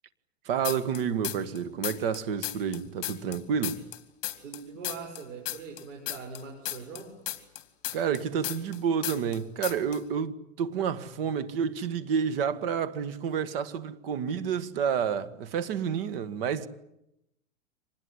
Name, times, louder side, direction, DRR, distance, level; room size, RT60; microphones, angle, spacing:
voice 1, 0.4-3.8 7.9-16.7, right 7 dB, 45° right, 1.7 m, -29 dB
sound 1, 0.6-1.6 1.8-4.6 4.8-8.8 9.0-9.4 9.6-10.0, left 14 dB, 45° left, 2.8 m, -34 dB
voice 2, 4.4-7.2, right 5 dB, 70° right, 6.9 m, -42 dB
25.5 x 20.0 x 9.8 m
supercardioid pair, 165°, 39 cm